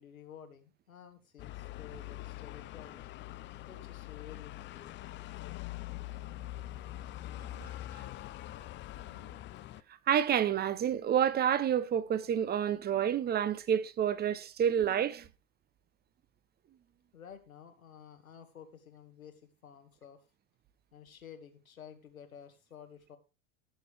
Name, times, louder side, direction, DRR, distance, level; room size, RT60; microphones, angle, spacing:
voice 1, 0.0-3.1 3.7-5.2 17.1-20.2 20.9-23.2, left 8 dB, 85° left, 2.0 m, -52 dB
sound 1, 1.4-9.8, left 15 dB, 30° left, 0.6 m, -44 dB
voice 2, 10.1-15.3, right 9 dB, 25° right, 0.8 m, -29 dB
17.0 x 6.8 x 3.4 m
hypercardioid pair, 95°, 41 cm